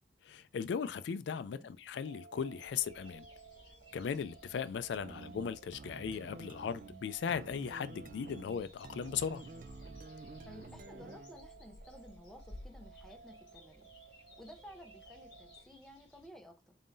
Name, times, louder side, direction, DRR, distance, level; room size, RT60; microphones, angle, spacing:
voice 1, 0.2-3.3 3.9-9.4, left 7 dB, 80° left, 0.3 m, -37 dB
voice 2, 1.3-1.7 10.4-13.9 14.4-16.8, equal, 5° left, 0.7 m, -54 dB
sound 1, 2.0-15.6, right 5 dB, 80° right, 1.6 m, -58 dB
sound 2, 2.6-16.3, left 1 dB, 25° left, 1.6 m, -58 dB
sound 3, 4.9-11.4, right 3 dB, 45° right, 0.4 m, -50 dB
4.0 x 3.7 x 2.5 m
head